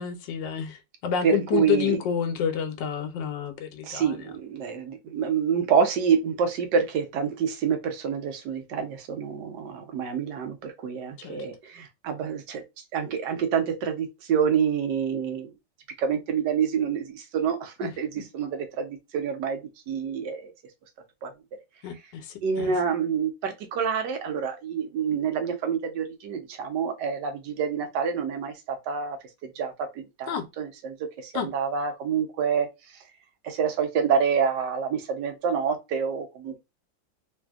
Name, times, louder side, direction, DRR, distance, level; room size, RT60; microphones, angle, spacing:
voice 1, 0.0-4.1 11.2-11.4 17.8-17.9 21.8-22.7 30.3-30.4 31.3-31.5, left 8 dB, 80° left, 1.4 m, -29 dB
voice 2, 1.2-2.0 3.9-4.2 4.5-10.5 10.8-11.5 12.0-12.6 12.9-15.5 16.0-17.0 17.3-18.1 18.3-18.5 18.8-18.9 19.1-19.6 19.9-20.4 21.2-21.3 22.4-28.5 28.9-29.2 29.6-29.7 30.2-30.9 31.4-32.7 33.6-36.6, right 6 dB, 75° right, 1.3 m, -26 dB
3.3 x 2.6 x 2.3 m
omnidirectional pair, 2.0 m